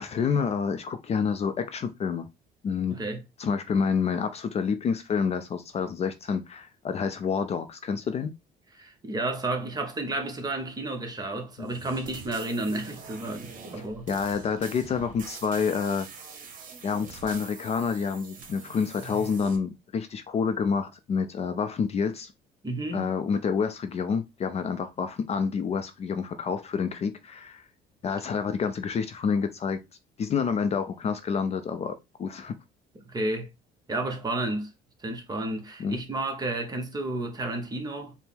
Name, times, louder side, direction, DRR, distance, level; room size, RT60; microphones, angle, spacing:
voice 1, 0.0-2.3 2.6-3.0 3.4-8.3 11.6-11.7 14.1-16.1 16.8-22.3 22.9-27.6 28.0-29.8 30.2-32.6 35.8-36.0, left 6 dB, 40° left, 0.4 m, -28 dB
voice 2, 2.9-3.2 8.8-14.1 22.6-23.1 33.0-33.5 33.9-34.7 35.0-38.1, right 2 dB, 25° right, 0.9 m, -31 dB
sound 1, 11.6-19.6, right 5 dB, 50° right, 0.9 m, -45 dB
4.4 x 2.1 x 3.4 m
cardioid pair, 110°, 17 cm